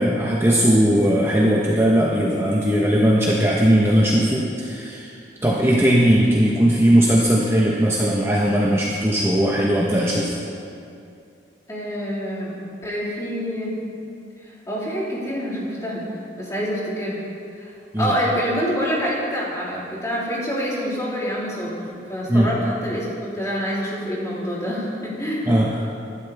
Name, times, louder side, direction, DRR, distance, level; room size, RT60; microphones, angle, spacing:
voice 1, 0.0-5.1 5.4-10.3 17.9-18.1 22.3-22.5 25.4-25.8, equal, 15° right, -5 dB, 1.3 m, -18 dB
voice 2, 11.7-12.5 12.8-13.8 14.7-16.0 16.4-17.2 17.6-25.5, equal, 20° left, -7 dB, 3.6 m, -26 dB
25.5 x 12.0 x 3.6 m, 2.5 s
head